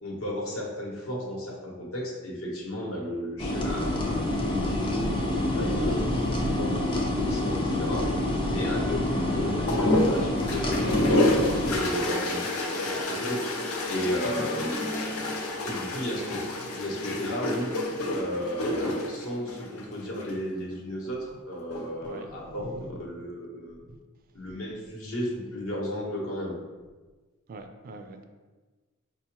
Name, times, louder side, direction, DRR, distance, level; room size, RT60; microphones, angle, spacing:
voice 1, 0.0-4.2 4.5-5.1 5.4-12.6 13.1-14.8 15.7-16.4 16.7-17.7 18.1-23.8 24.3-26.6, equal, 70° left, -3 dB, 1.0 m, -34 dB
sound 1, 3.4-11.8, left 1 dB, 25° left, 0.5 m, -27 dB
sound 2, 9.7-20.4 21.5-22.1, left 1 dB, 90° left, 0.6 m, -28 dB
voice 2, 11.7-12.4 12.6-13.0 14.2-14.5 22.0-22.9 23.9-24.0 27.5-28.2, right 2 dB, 45° right, 5 dB, 0.3 m, -43 dB
5.1 x 2.2 x 2.9 m, 1.3 s
head